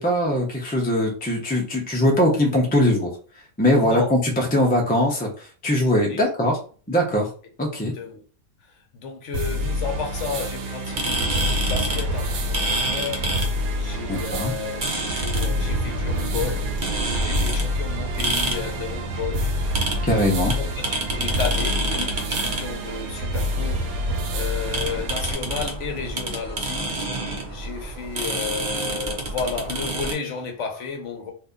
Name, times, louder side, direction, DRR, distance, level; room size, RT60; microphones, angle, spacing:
voice 1, 0.0-3.1 3.6-5.3 5.6-6.6 6.9-7.3 7.6-7.9 14.1-14.5 20.0-20.5, left 1 dB, 10° left, 0.5 m, -21 dB
voice 2, 3.7-4.2 6.1-6.4 7.9-8.2 8.9-16.7 17.2-19.5 20.6-27.0 27.5-31.3, left 5 dB, 60° left, 1.0 m, -33 dB
sound 1, 9.3-25.3, equal, 80° right, 1.1 m, -27 dB
sound 2, 10.9-30.1, right 2 dB, 45° right, 0.7 m, -29 dB
2.7 x 2.7 x 3.6 m
omnidirectional pair, 1.5 m